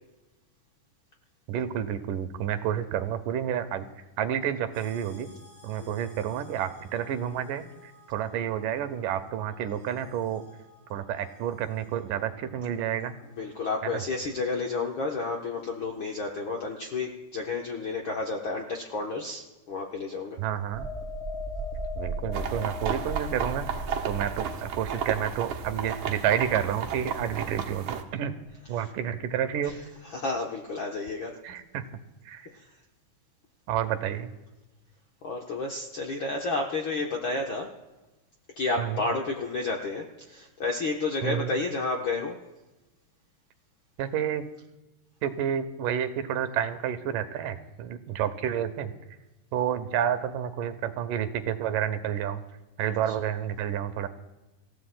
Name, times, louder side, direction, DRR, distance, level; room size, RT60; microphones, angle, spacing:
voice 1, 1.5-3.8 4.2-5.3 5.6-10.4 10.9-13.2 13.8-14.0 20.4-20.9 22.0-23.7 24.0-28.4 28.7-29.8 31.4-31.9 32.3-32.5 33.7-34.3 38.8-39.0 41.2-41.6 44.0-44.4 45.2-48.9 49.5-52.4 52.8-54.1, right 9 dB, 90° right, 10 dB, 2.4 m, -30 dB
sound 1, 4.7-16.2, left 3 dB, 10° left, 6.5 m, -58 dB
voice 2, 13.4-20.4 28.7-28.9 29.6-29.8 30.0-31.3 32.5-32.7 35.2-37.7 38.6-42.4 53.1-53.3, left 3 dB, 70° left, 0 dB, 1.2 m, -31 dB
sound 2, 20.7-28.2 28.5-28.7, right 1 dB, 25° right, 0.8 m, -37 dB
sound 3, 22.3-28.0, right 8 dB, 70° right, 2.3 m, -34 dB
26.5 x 15.0 x 2.2 m, 1.1 s
omnidirectional pair, 3.7 m